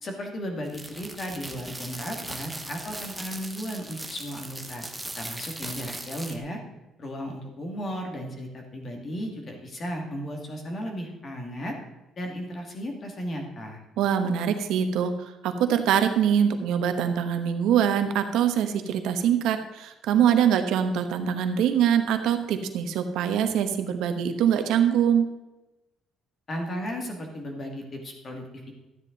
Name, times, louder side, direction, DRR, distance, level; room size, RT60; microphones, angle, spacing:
voice 1, 0.0-4.9 5.2-6.6 7.0-11.8 12.2-13.8 26.5-28.7, equal, 30° left, 2 dB, 2.2 m, -35 dB
sound 1, 0.6-6.4, right 1 dB, 5° right, 0.9 m, -39 dB
voice 2, 14.0-25.3, right 8 dB, 85° right, 7 dB, 1.1 m, -23 dB
12.5 x 9.4 x 4.0 m, 1.0 s
cardioid pair, 150°, 0 cm